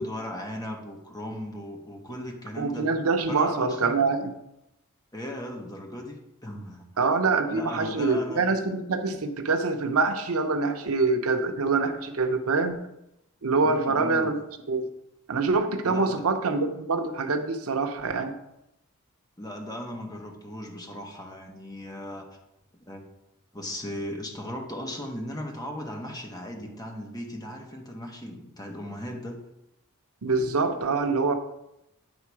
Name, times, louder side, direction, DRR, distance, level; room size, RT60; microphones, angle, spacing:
voice 1, 0.0-2.9 3.3-4.0 5.1-6.9 7.5-8.4 13.6-14.4 15.8-16.3 19.4-22.3 22.9-23.0 23.5-29.4, left 1 dB, 20° left, 1 dB, 1.2 m, -37 dB
voice 2, 2.6-4.3 7.0-12.8 13.4-14.4 14.7-14.9 15.3-18.3 30.2-31.3, right 3 dB, 90° right, 6 dB, 0.8 m, -25 dB
9.9 x 3.7 x 4.7 m, 0.86 s
head